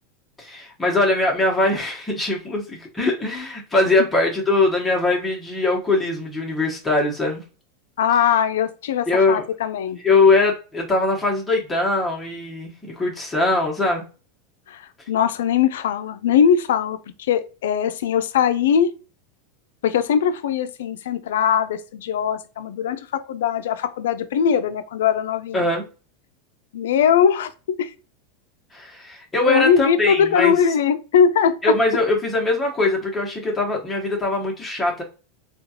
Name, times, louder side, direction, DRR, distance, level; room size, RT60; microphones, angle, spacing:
voice 1, 0.4-7.4 9.1-9.4 10.0-14.1 25.5-25.8 28.7-30.6 31.6-35.0, left 2 dB, 15° left, 1.1 m, -21 dB
voice 2, 8.0-10.0 14.7-18.9 19.8-25.7 26.7-27.9 29.5-31.7, left 8 dB, 80° left, 0.4 m, -20 dB
3.7 x 2.3 x 2.8 m
hypercardioid pair, 110°, 0 cm